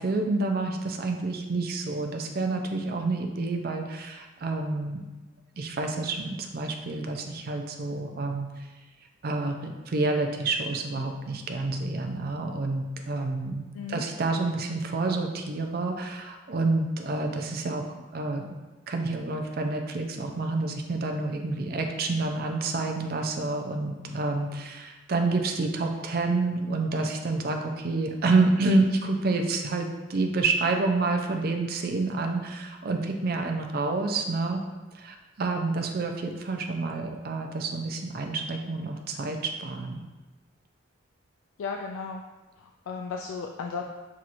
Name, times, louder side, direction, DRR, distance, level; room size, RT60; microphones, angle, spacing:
voice 1, 0.0-5.0 5.6-8.7 9.2-17.8 18.1-18.5 18.9-34.6 34.9-40.0, right 3 dB, 50° right, 4 dB, 0.4 m, -28 dB
voice 2, 41.6-42.2 42.6-43.8, left 5 dB, 90° left, 2 dB, 0.3 m, -35 dB
6.1 x 2.8 x 2.5 m, 1.2 s
head